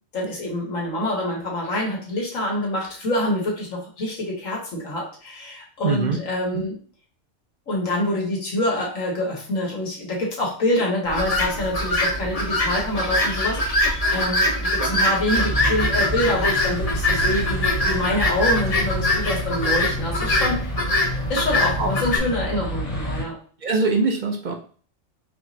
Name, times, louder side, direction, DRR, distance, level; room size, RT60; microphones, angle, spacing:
voice 1, 0.1-6.8 7.7-20.8 21.3-23.4, left 1 dB, 75° left, -2 dB, 1.8 m, -26 dB
voice 2, 5.8-6.2 6.5-6.6 14.8-15.1 21.8-21.9 23.6-24.5, right 3 dB, 50° right, 2 dB, 0.6 m, -23 dB
sound 1, 11.1-22.2, left 1 dB, 35° left, 0.7 m, -23 dB
sound 2, 15.3-23.2, right 1 dB, 60° left, 2.0 m, -29 dB
4.5 x 3.1 x 2.7 m, 0.43 s
omnidirectional pair, 1.4 m